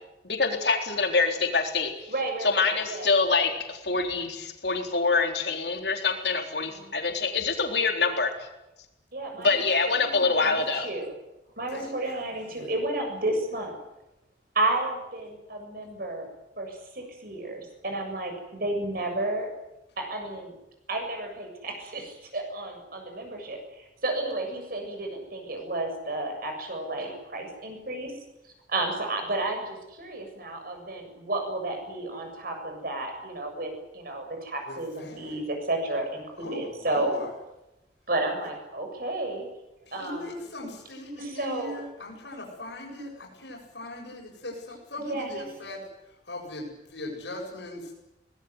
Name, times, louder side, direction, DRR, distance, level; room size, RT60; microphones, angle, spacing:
voice 1, 0.2-2.1 2.4-8.3 9.4-10.9, left 4 dB, 70° left, 3 dB, 3.8 m, -25 dB
voice 2, 2.1-3.2 6.6-7.0 9.1-11.1 11.6-13.7 14.5-16.3 16.6-19.5 20.0-20.5 20.9-28.1 28.7-37.1 38.1-39.5 39.9-40.3 41.2-41.8 45.0-45.5, right 2 dB, 55° right, 4 dB, 7.4 m, -32 dB
voice 3, 11.7-12.7 34.7-35.3 36.4-37.3 39.9-45.8 46.3-47.9, left 1 dB, 90° left, -1 dB, 7.8 m, -39 dB
23.5 x 20.0 x 9.6 m, 0.93 s
head